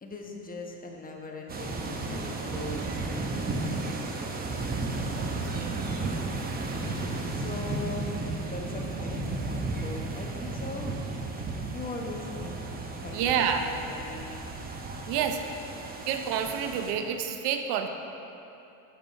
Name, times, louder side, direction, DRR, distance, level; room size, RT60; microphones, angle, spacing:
voice 1, 0.0-3.6 6.8-7.0 7.3-10.9 11.7-12.6 13.0-14.4, left 2 dB, 20° left, 0 dB, 1.1 m, -40 dB
sound 1, 1.5-16.9, right 2 dB, 20° right, 0.8 m, -34 dB
voice 2, 5.1-5.8 13.1-13.6 15.1-15.4 16.1-17.9, right 8 dB, 65° right, 6 dB, 0.8 m, -29 dB
11.5 x 7.3 x 4.1 m, 2.8 s
supercardioid pair, 125°, 43 cm